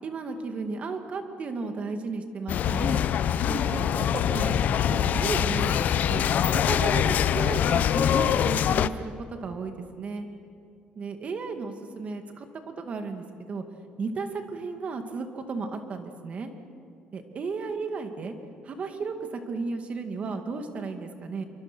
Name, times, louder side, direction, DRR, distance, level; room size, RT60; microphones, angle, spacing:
voice 1, 0.0-3.0 3.5-6.2 6.5-10.3 11.0-13.6 14.0-16.5 17.1-18.4 18.6-21.4, right 4 dB, 40° right, 6 dB, 2.2 m, -34 dB
sound 1, 2.5-8.9, left 9 dB, 55° left, 0.7 m, -24 dB
27.0 x 24.0 x 6.3 m, 2.4 s
cardioid pair, 125°, 3 cm